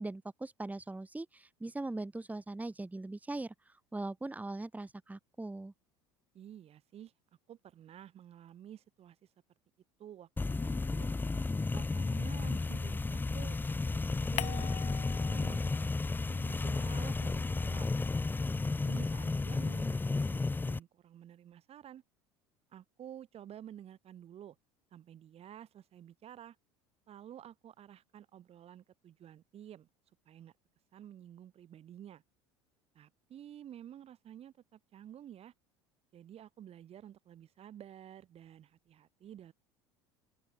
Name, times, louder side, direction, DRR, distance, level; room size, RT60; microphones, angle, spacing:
voice 1, 0.0-5.7, right 2 dB, 10° right, 3.0 m, -40 dB
voice 2, 6.3-7.1 7.5-9.2 10.0-11.1 11.7-17.9 18.5-22.0 22.7-24.6 24.9-26.6 27.1-29.9 30.2-30.5 30.9-32.2 32.9-35.5 36.1-39.5, right 10 dB, 45° right, 5.2 m, -51 dB
sound 1, 10.4-20.8, left 3 dB, 15° left, 0.9 m, -33 dB
sound 2, 14.4-16.1 16.4-18.8, left 12 dB, 50° left, 5.1 m, -45 dB
open air
hypercardioid pair, 70°, 15 cm